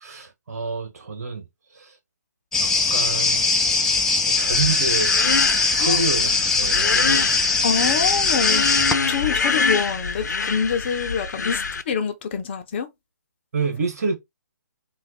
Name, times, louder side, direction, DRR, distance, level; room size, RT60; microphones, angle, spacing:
voice 1, 0.0-1.4 1.7-1.9 2.6-3.5 4.3-5.1 5.7-7.2 9.0-9.2 13.5-14.2, right 4 dB, 55° right, 1.7 m, -28 dB
sound 1, 2.5-8.9, left 4 dB, 5° left, 0.5 m, -21 dB
sound 2, 4.4-11.8, left 4 dB, 70° left, 0.7 m, -25 dB
voice 2, 7.6-8.7 9.1-12.9, left 7 dB, 35° left, 0.7 m, -26 dB
4.2 x 2.4 x 4.1 m
figure-of-eight pair, 145°, 10 cm